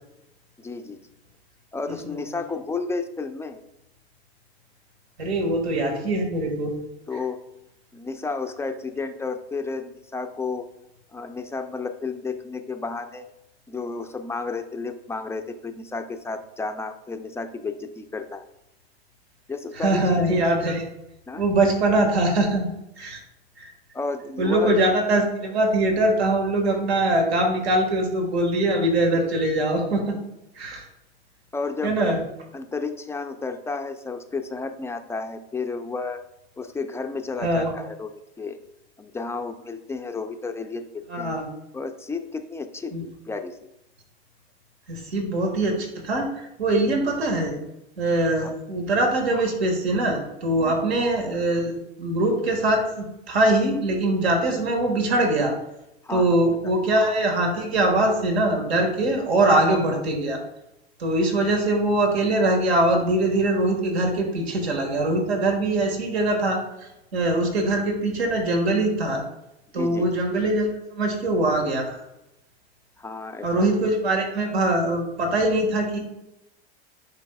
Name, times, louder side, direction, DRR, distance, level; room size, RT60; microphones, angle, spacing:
voice 1, 0.6-1.0 1.7-3.6 7.1-7.4 7.9-10.7 11.1-13.3 13.7-18.4 19.5-20.6 21.3-21.4 23.9-24.8 31.5-32.2 32.5-36.2 36.6-38.1 38.4-38.6 39.0-41.4 41.7-43.6 48.4-48.5 50.6-50.7 56.0-56.4 56.6-56.7 69.7-70.1 73.0-73.7, left 4 dB, 10° left, 6 dB, 0.3 m, -32 dB
voice 2, 1.9-2.3 5.2-6.8 19.7-20.8 21.4-22.7 23.0-23.2 23.6-23.7 24.4-30.2 30.5-30.8 31.8-32.2 37.4-37.7 41.1-41.5 42.9-43.1 44.9-47.6 48.0-55.5 56.1-60.4 61.0-69.2 69.7-72.0 73.4-76.0, right 1 dB, 85° right, 2 dB, 1.7 m, -22 dB
10.5 x 4.5 x 2.3 m, 0.88 s
hypercardioid pair, 105°, 31 cm